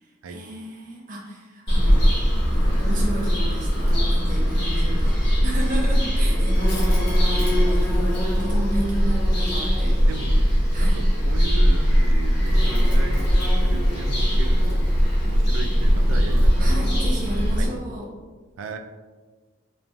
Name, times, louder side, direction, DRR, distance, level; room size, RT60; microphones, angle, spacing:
voice 1, 0.3-2.1 2.5-5.2 5.4-10.0 10.7-11.0 16.6-18.0, right 1 dB, 45° right, -2 dB, 0.6 m, -33 dB
Bird vocalization bird call bird song, 1.7-17.7, equal, 60° left, 0.9 m, -20 dB
voice 2, 10.0-16.7 17.6-17.7 18.6-18.8, right 3 dB, 90° right, 5 dB, 0.3 m, -36 dB
3.0 x 2.2 x 2.5 m, 1.3 s
head